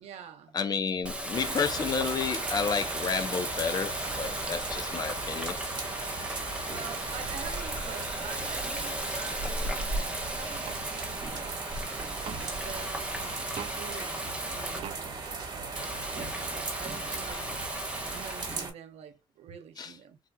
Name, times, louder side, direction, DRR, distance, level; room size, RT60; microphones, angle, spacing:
voice 1, 0.0-0.6 6.4-10.0 10.2-11.6 12.4-13.5 13.8-15.1 15.5-17.5 18.1-20.2, right 8 dB, 90° right, 0.8 m, -46 dB
voice 2, 0.5-5.5 17.3-17.6 19.8-20.0, left 6 dB, 40° left, 0.7 m, -31 dB
Water tap faucet, 1.0-14.8 15.8-18.6, equal, 10° right, 0.8 m, -36 dB
sound 1, 1.3-18.7, right 4 dB, 45° right, 1.5 m, -37 dB
sound 2, 9.4-9.6 10.6-10.8 12.2-12.4 13.5-13.8 14.8-15.0, right 8 dB, 65° right, 0.5 m, -40 dB
4.2 x 2.6 x 2.2 m
cardioid pair, 125°, 11 cm